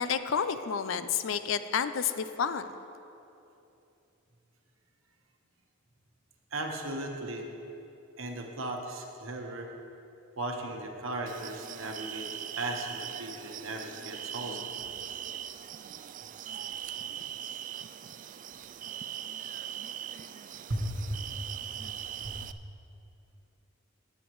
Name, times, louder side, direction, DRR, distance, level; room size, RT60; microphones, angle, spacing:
voice 1, 0.0-2.6, left 7 dB, 70° left, 11 dB, 0.5 m, -30 dB
voice 2, 6.5-7.5 8.2-9.7 10.4-14.6 20.7-21.2 22.2-22.4, right 1 dB, 80° right, 3 dB, 1.2 m, -36 dB
sound 1, 11.3-22.5, right 10 dB, 40° right, 0.3 m, -41 dB
19.0 x 9.0 x 3.1 m, 2.8 s
head